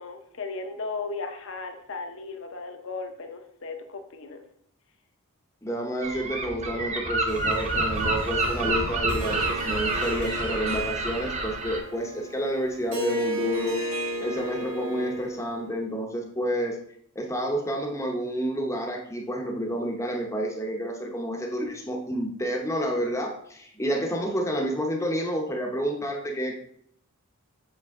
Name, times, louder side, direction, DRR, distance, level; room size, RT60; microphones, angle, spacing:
voice 1, 0.0-4.4, left 3 dB, 60° left, 5 dB, 0.7 m, -36 dB
voice 2, 5.6-16.8 17.1-26.6, equal, 15° left, 1 dB, 0.7 m, -29 dB
Gull seagull, 6.0-11.8, right 2 dB, 30° right, 0.8 m, -28 dB
Harp, 7.3-15.7, right 1 dB, 70° right, 1.5 m, -34 dB
7.6 x 4.0 x 3.5 m, 0.66 s
head